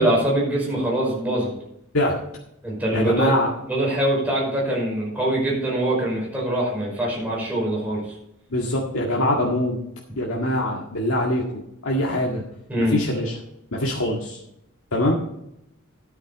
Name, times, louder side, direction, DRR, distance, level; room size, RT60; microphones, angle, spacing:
voice 1, 0.0-1.5 2.6-3.3 3.6-8.0 12.7-13.0, right 1 dB, 5° right, -4 dB, 5.4 m, -23 dB
voice 2, 2.9-3.5 8.5-9.8 10.2-12.4 12.8-13.4 13.7-14.4 14.9-15.1, left 1 dB, 80° left, -2 dB, 1.9 m, -23 dB
13.0 x 9.4 x 4.1 m, 0.80 s
head